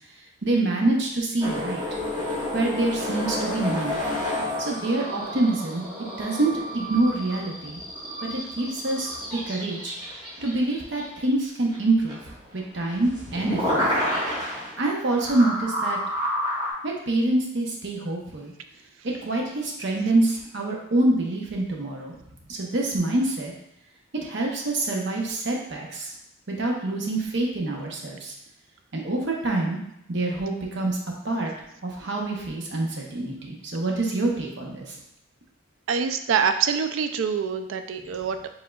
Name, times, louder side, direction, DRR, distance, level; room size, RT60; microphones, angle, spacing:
voice 1, 0.4-1.8 2.5-4.0 4.6-5.8 6.2-7.8 8.2-9.9 10.4-13.9 14.8-16.0 16.8-18.5 19.2-22.1 22.5-23.5 24.1-26.1 26.5-28.3 28.9-29.8 30.1-31.0 31.2-31.5 31.8-34.9, right 2 dB, 55° right, -1 dB, 0.8 m, -26 dB
sound 1, 1.4-11.4 11.7-11.8 12.1-16.7, left 1 dB, 20° right, 1.3 m, -30 dB
voice 2, 35.9-38.5, right 6 dB, 75° right, 8 dB, 0.3 m, -25 dB
5.0 x 3.7 x 2.3 m, 0.79 s
head